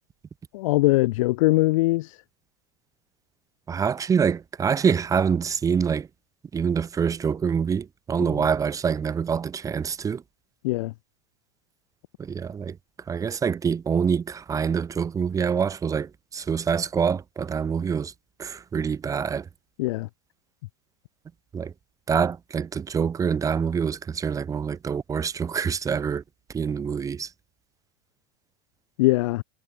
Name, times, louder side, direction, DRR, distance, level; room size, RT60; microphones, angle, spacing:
voice 1, 0.5-2.2 10.6-10.9 19.8-20.1 29.0-29.4, left 20 dB, 65° left, 1.6 m, -21 dB
voice 2, 3.7-6.1 6.5-10.2 12.2-12.8 13.1-18.1 18.4-19.5 21.5-21.7 22.1-26.2 26.5-27.3, right 6 dB, 20° right, 2.3 m, -25 dB
supercardioid pair, 140°, 18 cm